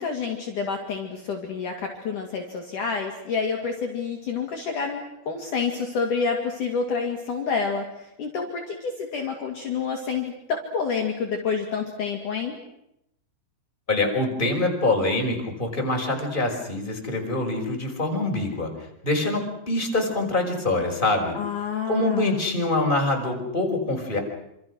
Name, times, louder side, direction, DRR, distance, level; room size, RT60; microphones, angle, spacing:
voice 1, 0.0-12.5 21.3-22.4, left 5 dB, 55° left, 2 dB, 3.7 m, -28 dB
voice 2, 13.9-18.7 19.0-24.2, left 2 dB, 10° left, 2 dB, 5.4 m, -25 dB
27.5 x 27.0 x 6.4 m, 0.81 s
omnidirectional pair, 4.8 m